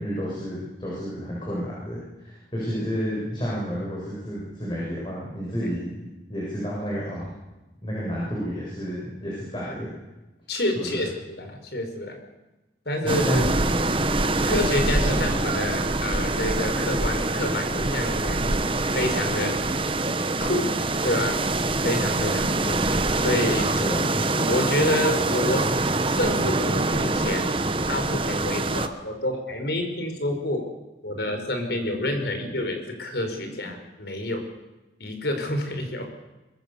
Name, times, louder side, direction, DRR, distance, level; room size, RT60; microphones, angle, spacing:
voice 1, 0.0-7.3 7.8-9.9 10.8-11.1 13.0-13.8 15.1-15.3 23.8-24.2, equal, 25° left, -5 dB, 7.3 m, -31 dB
voice 2, 10.5-12.2 12.8-13.4 14.4-18.4 18.9-19.6 20.4-20.7 21.0-21.4 21.8-23.7 24.4-25.7 26.0-27.6 27.9-30.6 31.0-34.4 35.0-36.0, left 1 dB, 70° left, 5 dB, 5.1 m, -28 dB
sound 1, 13.1-28.9, right 2 dB, 30° right, 1.2 m, -24 dB
25.0 x 22.0 x 7.0 m, 1.1 s
head